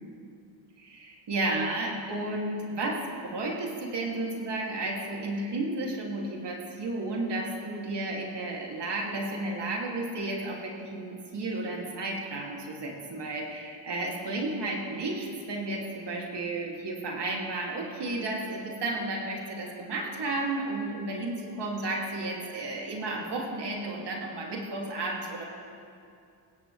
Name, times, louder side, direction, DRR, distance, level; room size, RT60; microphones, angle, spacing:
voice 1, 0.8-25.4, right 2 dB, 60° right, -2 dB, 2.7 m, -33 dB
19.5 x 16.0 x 3.3 m, 2.5 s
cardioid pair, 95°, 47 cm